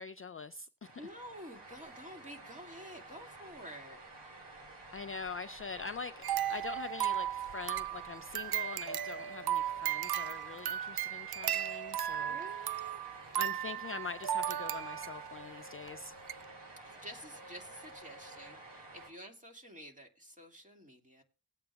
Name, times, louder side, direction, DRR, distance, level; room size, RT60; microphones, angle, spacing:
voice 1, 0.0-1.1 4.9-6.2 6.5-12.7 13.4-16.1, left 5 dB, 35° left, 0.4 m, -44 dB
sound 1, 0.8-19.1, right 2 dB, 85° right, 3.4 m, -51 dB
voice 2, 1.0-4.0 12.2-13.0 16.8-21.2, equal, 20° right, 2.2 m, -50 dB
sound 2, 6.2-15.4 15.9-16.0 16.3-16.4, right 11 dB, 65° right, 0.5 m, -35 dB
19.5 x 8.7 x 2.3 m
wide cardioid pair, 95°, 41 cm